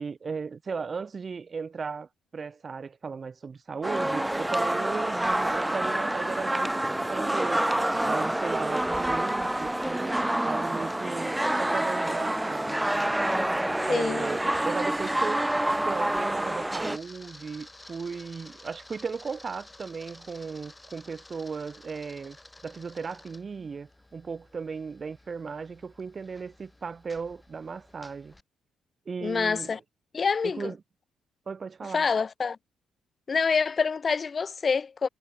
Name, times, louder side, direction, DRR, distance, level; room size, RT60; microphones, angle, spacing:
voice 1, 0.0-7.6 8.0-13.1 13.9-15.4 15.8-22.4 22.6-28.3 29.1-29.8 30.4-30.8 31.5-32.1, right 5 dB, 40° right, 2.2 m, -36 dB
sound 1, 3.8-17.0, right 1 dB, 10° right, 0.7 m, -27 dB
Camera, 12.8-28.4, left 2 dB, 10° left, 7.8 m, -53 dB
voice 2, 13.9-14.2 29.2-29.8 30.1-30.7 31.9-32.6 33.3-35.1, left 5 dB, 40° left, 0.6 m, -26 dB
cardioid pair, 90°, 0 cm